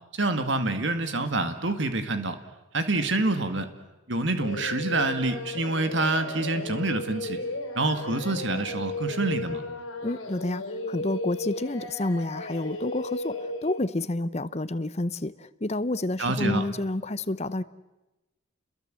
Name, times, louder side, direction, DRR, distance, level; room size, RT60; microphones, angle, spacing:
voice 1, 0.1-2.4 2.7-3.7 4.1-7.4 7.8-9.6 16.2-16.6, right 2 dB, 60° right, 8 dB, 2.1 m, -27 dB
Singing, 4.4-13.8, left 2 dB, 70° left, 4.5 m, -35 dB
voice 2, 10.0-17.6, left 2 dB, 30° left, 15 dB, 0.8 m, -29 dB
30.0 x 22.0 x 7.7 m, 1.1 s
head